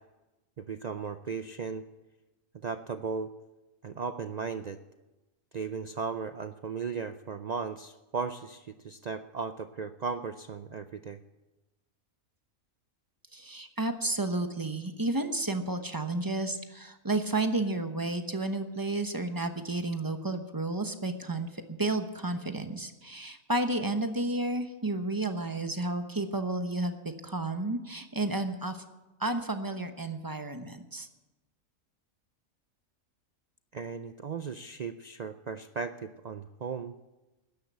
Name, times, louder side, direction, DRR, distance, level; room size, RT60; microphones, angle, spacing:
voice 1, 0.6-1.8 2.6-3.3 3.8-4.8 5.5-11.2 33.7-36.9, right 5 dB, 80° right, 10 dB, 0.3 m, -36 dB
voice 2, 13.3-27.0 27.2-28.8 29.2-31.1, right 2 dB, 20° right, 7 dB, 0.9 m, -32 dB
13.0 x 10.5 x 8.2 m, 1.1 s
omnidirectional pair, 1.4 m